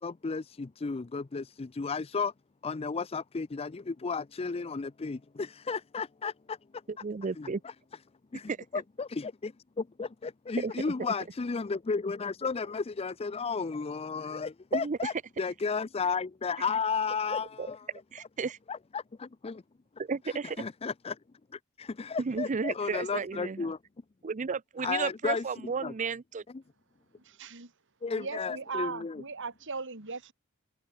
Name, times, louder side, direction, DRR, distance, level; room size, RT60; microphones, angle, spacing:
voice 1, 0.0-2.3 2.6-6.8 7.4-7.7 8.3-17.9 18.7-19.6 20.2-21.2 21.5-23.8 24.8-25.9 26.5-26.6 28.0-29.2, left 5 dB, 25° left, 0.4 m, -34 dB
voice 2, 7.0-7.6 8.5-8.6 10.6-10.7 14.7-15.0 17.6-17.7 18.1-18.6 20.1-20.6 22.2-23.7 24.2-26.4, right 5 dB, 35° right, 0.5 m, -33 dB
voice 3, 27.2-27.7 28.1-30.3, right 4 dB, 60° right, 3.2 m, -38 dB
head